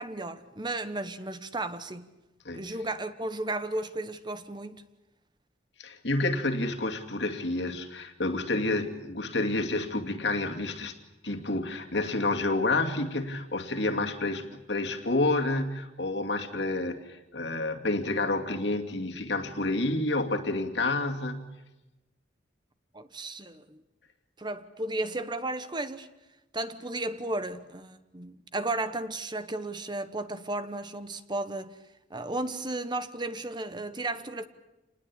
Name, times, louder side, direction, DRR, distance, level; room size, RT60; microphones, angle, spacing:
voice 1, 0.0-2.1 2.5-4.8 22.9-23.8 24.4-26.1 26.5-31.8 32.1-34.5, right 2 dB, 25° right, 1.1 m, -34 dB
voice 2, 5.8-11.0 11.2-21.5, left 2 dB, 70° left, 2.5 m, -29 dB
28.0 x 20.0 x 8.7 m
head